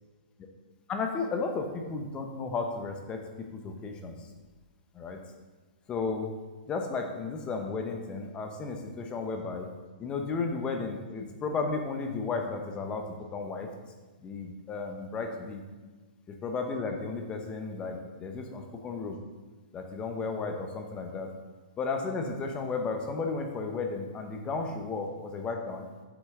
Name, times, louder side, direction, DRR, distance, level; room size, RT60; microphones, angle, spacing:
voice 1, 0.9-4.1 4.9-5.2 5.9-6.3 6.7-9.7 10.0-13.1 13.3-13.7 14.2-15.6 16.4-19.2 19.7-21.3 21.8-25.8, left 4 dB, 20° left, 4 dB, 0.8 m, -33 dB
7.7 x 6.1 x 3.7 m, 1.3 s
hypercardioid pair, 145°, 5 cm